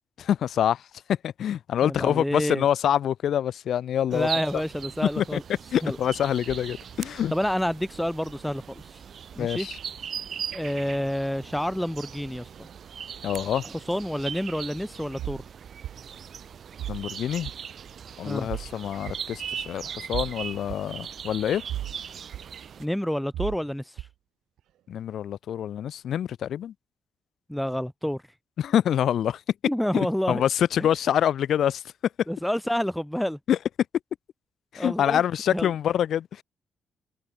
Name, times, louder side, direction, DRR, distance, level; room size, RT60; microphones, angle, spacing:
voice 1, 0.2-0.8 1.1-4.3 5.2-5.4 5.7-7.3 9.4-9.8 13.2-13.7 16.9-17.5 18.2-21.6 24.9-26.7 28.6-29.4 29.9-31.8 33.5-33.6 34.7-36.4, left 10 dB, 70° left, 1.5 m, -26 dB
voice 2, 1.8-2.6 4.1-5.4 5.8-6.0 7.3-9.0 9.3-9.7 10.5-12.7 13.6-15.5 18.2-18.5 22.8-24.1 27.5-28.2 29.6-30.4 30.8-30.9 32.3-33.4 34.8-35.2 35.5-35.7, equal, 5° left, 0.7 m, -29 dB
sound 1, 4.1-22.9, right 8 dB, 55° right, 1.0 m, -39 dB
sound 2, 15.2-15.4 15.8-16.0 16.8-17.0 17.5-17.6 18.5-18.7 19.1-19.2 20.1-20.3 20.7-20.8 21.7-22.0 22.3-22.4 23.3-23.6 24.0-24.1, right 12 dB, 90° right, 0.4 m, -33 dB
cardioid pair, 110°, 0 cm